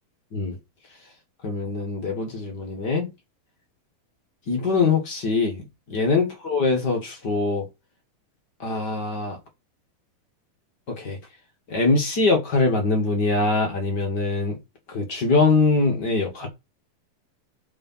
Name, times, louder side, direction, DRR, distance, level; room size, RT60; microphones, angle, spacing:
voice 1, 1.4-3.1 4.5-7.6 8.6-9.4 10.9-11.2 11.7-14.6 14.9-16.5, left 3 dB, 45° left, 1.5 m, -23 dB
6.6 x 4.8 x 5.6 m
omnidirectional pair, 4.2 m